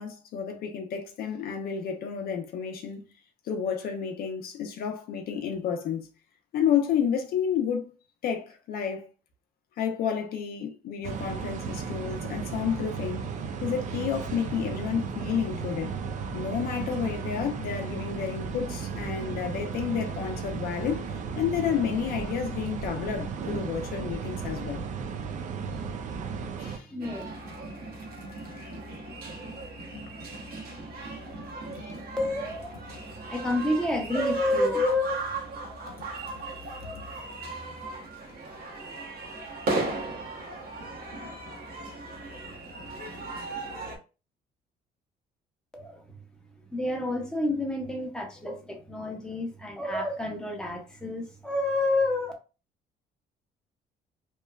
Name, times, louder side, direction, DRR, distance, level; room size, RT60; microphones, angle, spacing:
voice 1, 0.0-3.1 3.4-6.1 6.5-7.9 8.2-9.1 9.8-13.3 13.6-15.9 16.3-24.8 26.6-26.9 29.9-30.0 31.7-31.8 35.9-36.4 36.8-37.0, left 7 dB, 65° left, 0.5 m, -31 dB
sound 1, 11.0-26.8, right 6 dB, 45° right, 0.5 m, -35 dB
voice 2, 26.9-27.2 32.2-32.9 33.3-35.2 45.7-46.0 46.7-52.3, left 2 dB, 5° left, 0.7 m, -29 dB
sound 2, 27.0-44.0, right 2 dB, 65° right, 1.0 m, -37 dB
2.9 x 2.1 x 2.3 m
cardioid pair, 110°, 17 cm